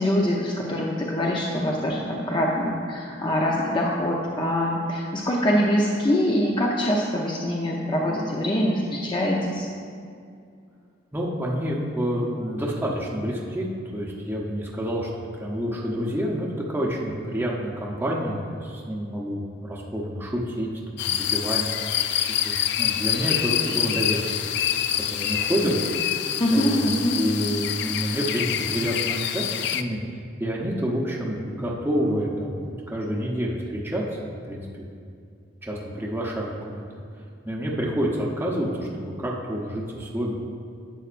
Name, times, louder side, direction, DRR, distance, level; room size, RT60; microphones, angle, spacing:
voice 1, 0.0-9.7 26.4-27.2, equal, 25° left, -2 dB, 0.6 m, -24 dB
voice 2, 11.1-22.2 22.4-24.2 24.9-25.7 26.5-30.0 30.4-32.6 32.9-34.9 35.6-36.8 37.4-40.4, equal, 10° right, -4 dB, 0.8 m, -28 dB
sound 1, 21.0-29.8, left 10 dB, 60° left, 0.3 m, -26 dB
11.0 x 7.8 x 2.5 m, 2.3 s
head